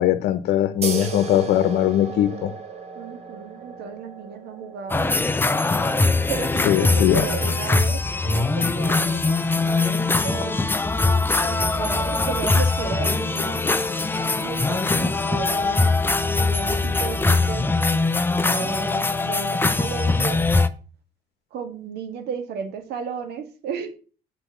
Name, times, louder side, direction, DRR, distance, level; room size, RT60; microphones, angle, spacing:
voice 1, 0.0-2.5 6.6-7.3, left 12 dB, 80° left, 0.9 m, -20 dB
sound 1, 0.8-7.9, right 4 dB, 40° right, 2.1 m, -36 dB
voice 2, 2.9-5.2 6.3-10.5 11.4-13.7 14.4-15.9 16.4-17.7 18.4-20.4 21.5-23.9, right 7 dB, 75° right, 2.0 m, -34 dB
sound 2, 4.9-20.7, left 3 dB, 10° left, 0.6 m, -22 dB
8.1 x 4.7 x 7.0 m
cardioid pair, 110°, 17 cm